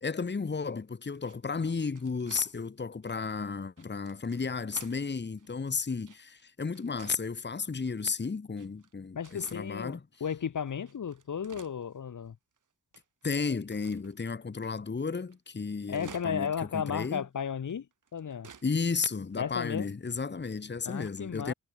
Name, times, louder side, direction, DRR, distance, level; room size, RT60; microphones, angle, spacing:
voice 1, 0.0-10.0 13.2-17.2 18.6-21.5, left 5 dB, 35° left, 1.6 m, -33 dB
sound 1, 1.2-2.6 3.0-3.2 3.8-5.0 5.4-6.4 6.7-7.3 7.8-7.9 8.6-8.9 9.2-9.6 10.1-10.2 10.7-12.3 12.6-12.7 12.9-14.2 14.6-14.7 15.0-15.1 15.3-16.6 16.9-17.0 17.7-18.7 19.0-19.1 19.3-19.4 20.1-20.4, right 6 dB, 70° right, 7.4 m, -53 dB
voice 2, 9.2-12.4 15.9-17.9 18.1-18.5 19.4-19.9 20.9-21.5, left 7 dB, 70° left, 1.9 m, -34 dB
wide cardioid pair, 90°, 32 cm